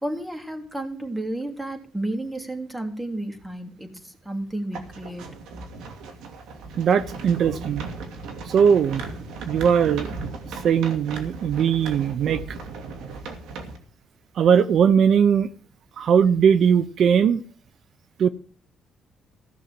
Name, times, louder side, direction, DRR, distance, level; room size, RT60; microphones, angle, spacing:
voice 1, 0.0-5.3, right 1 dB, 10° right, 3.2 m, -32 dB
sound 1, 4.7-13.8, right 3 dB, 90° right, 2.6 m, -36 dB
voice 2, 6.8-7.9 8.5-9.0 9.5-10.1 10.6-12.4 14.4-15.5 16.0-17.4 18.2-18.3, right 7 dB, 65° right, 0.7 m, -19 dB
15.5 x 6.5 x 7.5 m
cardioid pair, 90°, 0 cm